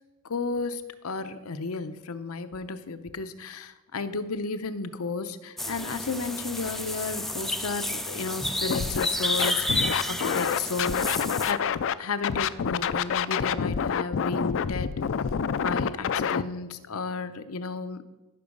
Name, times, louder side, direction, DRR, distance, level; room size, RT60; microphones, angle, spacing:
voice 1, 0.2-11.7 12.0-14.9 15.6-18.1, left 4 dB, 85° left, 11 dB, 0.7 m, -33 dB
sound 1, 5.6-11.5, left 1 dB, ahead, 0.4 m, -31 dB
Scratching (performance technique), 8.7-9.1 9.4-11.9 12.2-16.4, left 7 dB, 60° left, 0.4 m, -27 dB
14.5 x 6.2 x 5.3 m, 1.1 s
head